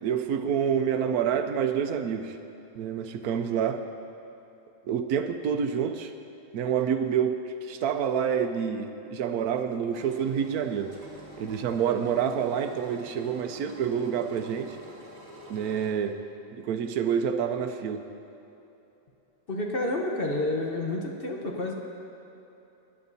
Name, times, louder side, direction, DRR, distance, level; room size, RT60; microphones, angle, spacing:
voice 1, 0.0-2.4 2.7-3.8 4.9-6.1 6.5-10.9 11.4-14.8 15.5-16.2 16.5-18.0, right 7 dB, 80° right, 7 dB, 1.1 m, -28 dB
Engine, 9.9-15.9, right 1 dB, 25° right, 1.8 m, -47 dB
voice 2, 19.5-21.7, left 2 dB, 45° left, 0 dB, 1.1 m, -29 dB
19.5 x 10.0 x 2.7 m, 3.0 s
omnidirectional pair, 1.6 m